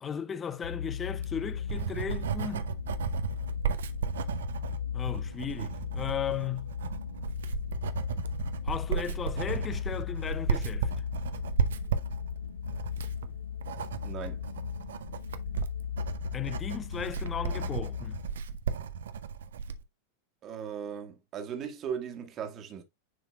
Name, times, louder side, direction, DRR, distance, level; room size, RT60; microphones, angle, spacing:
voice 1, 0.0-2.7 4.9-6.7 8.6-10.9 16.3-18.1, left 8 dB, 20° left, 0.6 m, -36 dB
sound 1, 0.6-18.4, left 9 dB, 65° left, 0.4 m, -37 dB
Writing, 1.1-19.8, right 7 dB, 60° right, 0.7 m, -34 dB
sound 2, 1.1-16.5, right 3 dB, 85° right, 1.4 m, -54 dB
voice 2, 14.0-14.4 20.4-22.8, right 8 dB, 30° right, 1.6 m, -37 dB
10.0 x 4.6 x 2.3 m
figure-of-eight pair, 90°, 0 cm